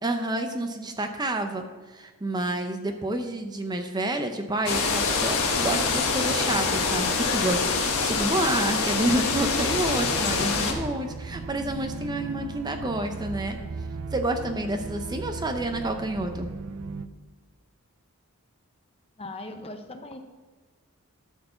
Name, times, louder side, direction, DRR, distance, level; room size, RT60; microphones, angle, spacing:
voice 1, 0.0-13.6 14.1-16.5, right 1 dB, 20° right, 6 dB, 0.6 m, -29 dB
sound 1, 4.7-10.7, left 4 dB, 75° left, 1.4 m, -25 dB
sound 2, 9.2-17.1, right 4 dB, 70° right, 0.5 m, -37 dB
voice 2, 19.2-20.2, left 2 dB, 25° left, 6 dB, 0.7 m, -39 dB
12.5 x 4.6 x 6.9 m, 1.4 s
head